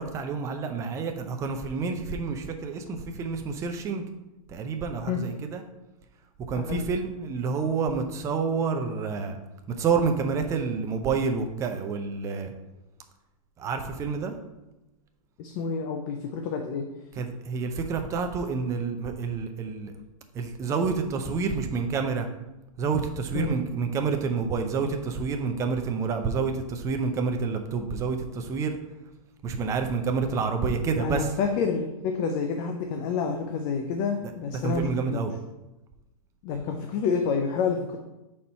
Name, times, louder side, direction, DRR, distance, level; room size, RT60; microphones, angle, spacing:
voice 1, 0.0-4.0 4.5-5.6 6.5-9.4 9.8-12.5 13.6-14.4 17.1-19.9 20.3-22.3 22.8-28.7 29.4-31.3 34.2-35.3, right 5 dB, 15° right, 5 dB, 0.5 m, -28 dB
voice 2, 15.4-16.9 23.3-23.5 31.0-35.2 36.4-38.0, left 5 dB, 35° left, 4 dB, 0.5 m, -28 dB
4.3 x 4.2 x 5.5 m, 0.99 s
hypercardioid pair, 145°, 19 cm